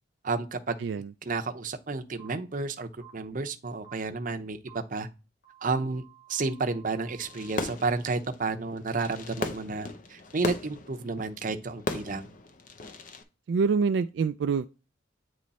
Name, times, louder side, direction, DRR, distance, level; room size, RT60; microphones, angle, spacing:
voice 1, 0.2-0.8 1.3-5.1 5.6-6.0 6.3-12.3, right 3 dB, 45° right, 0.7 m, -31 dB
voice 2, 0.8-1.1 13.5-14.7, right 5 dB, 70° right, 0.3 m, -26 dB
sound 1, 2.2-2.3 3.0-3.1 3.8-3.9 4.7-4.8 5.4-7.5, right 12 dB, 75° left, 2.3 m, -54 dB
Fireworks, 7.2-13.2, left 3 dB, 45° left, 0.7 m, -37 dB
8.6 x 3.1 x 4.1 m
head